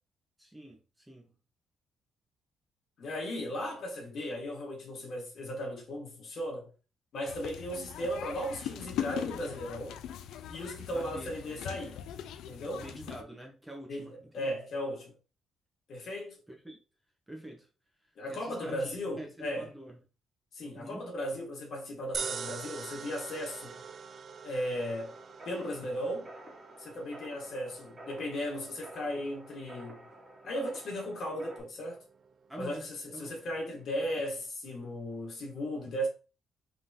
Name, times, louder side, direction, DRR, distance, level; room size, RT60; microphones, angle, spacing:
voice 1, 0.4-1.3 10.9-11.4 12.7-14.5 16.5-16.8 17.3-17.7 18.0-20.0 20.7-21.0 32.5-32.9 33.1-33.3, right 1 dB, 10° right, 1.1 m, -46 dB
voice 2, 3.0-6.7 7.1-10.0 10.5-12.0 12.5-12.8 13.9-15.1 15.9-16.4 18.2-19.7 20.5-23.8 24.4-25.1 25.4-26.3 26.8-30.1 30.4-32.0 32.6-36.1, equal, 60° left, 1.7 m, -36 dB
sound 1, 7.3-13.2, left 10 dB, 85° left, 0.3 m, -40 dB
sound 2, 22.1-34.5, right 5 dB, 50° right, 0.4 m, -46 dB
sound 3, 24.8-31.6, right 1 dB, 30° right, 1.6 m, -51 dB
3.5 x 3.4 x 2.8 m
cardioid pair, 90°, 0 cm